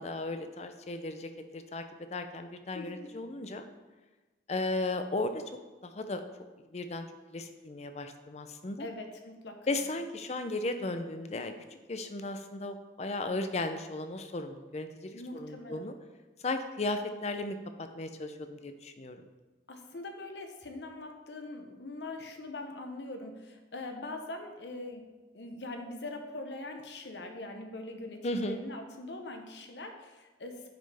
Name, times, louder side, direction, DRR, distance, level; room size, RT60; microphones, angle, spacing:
voice 1, 0.0-1.8 2.1-3.7 4.5-5.4 5.8-6.2 6.7-8.9 9.7-11.5 11.9-15.9 16.4-17.6 17.9-19.2 28.2-28.6, left 2 dB, 40° left, 8 dB, 0.5 m, -35 dB
voice 2, 2.7-3.1 8.8-9.8 15.1-15.9 19.7-25.1 25.3-30.7, left 2 dB, 75° left, 5 dB, 0.9 m, -42 dB
9.0 x 5.4 x 3.4 m, 1.2 s
head